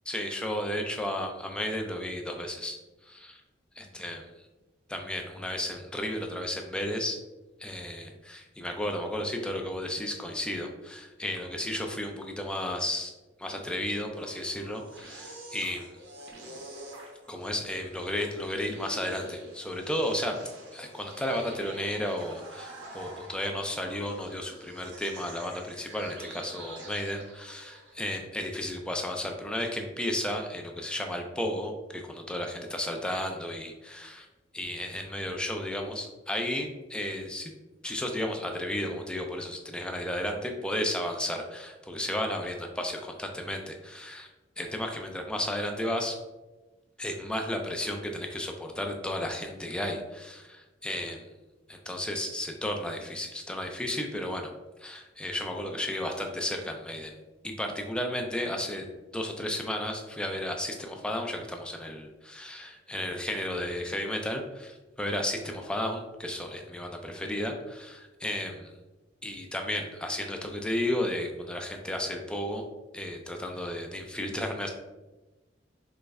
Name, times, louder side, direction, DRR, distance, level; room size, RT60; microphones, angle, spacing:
voice 1, 0.1-2.8 3.0-3.4 3.8-4.2 4.9-7.2 7.6-13.1 13.4-15.9 17.3-20.3 20.7-34.3 34.5-37.5 37.8-44.3 44.6-46.2 47.0-51.3 51.7-54.5 54.8-57.1 57.4-58.8 59.1-68.7 69.2-72.6 72.9-74.7, left 1 dB, 5° left, 3 dB, 0.3 m, -33 dB
sound 1, 14.0-28.1, right 1 dB, 75° right, 0.7 m, -46 dB
3.1 x 2.0 x 3.4 m, 1.1 s
head